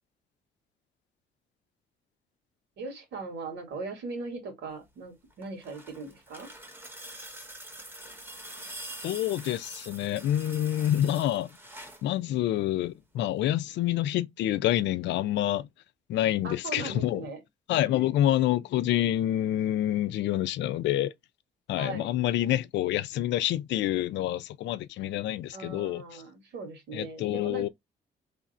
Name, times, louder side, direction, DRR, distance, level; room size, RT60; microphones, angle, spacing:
voice 1, 2.8-6.5 16.4-17.4 17.9-18.3 21.8-22.1 25.5-27.7, right 3 dB, 85° right, 2.1 m, -39 dB
sound 1, 5.3-12.1 13.4-13.5, right 1 dB, 10° right, 0.9 m, -45 dB
voice 2, 9.0-11.5 12.0-15.7 16.1-17.2 17.7-21.1 21.7-26.2 26.9-27.7, left 13 dB, 85° left, 0.4 m, -27 dB
3.4 x 2.5 x 4.1 m
cardioid pair, 160°, 18 cm